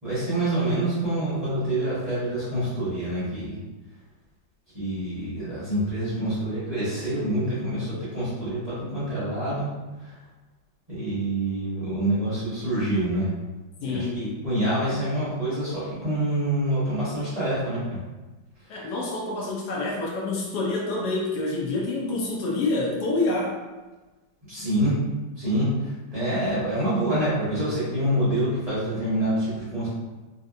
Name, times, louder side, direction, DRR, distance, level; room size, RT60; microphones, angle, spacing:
voice 1, 0.0-3.6 4.7-9.7 10.0-10.1 10.9-13.3 13.8-18.0 24.4-24.9 25.4-29.9, right 1 dB, 25° right, -13 dB, 0.8 m, -26 dB
voice 2, 13.8-14.2 18.7-23.6, left 2 dB, 75° left, -2 dB, 0.9 m, -27 dB
3.2 x 2.7 x 2.5 m, 1.2 s
omnidirectional pair, 2.2 m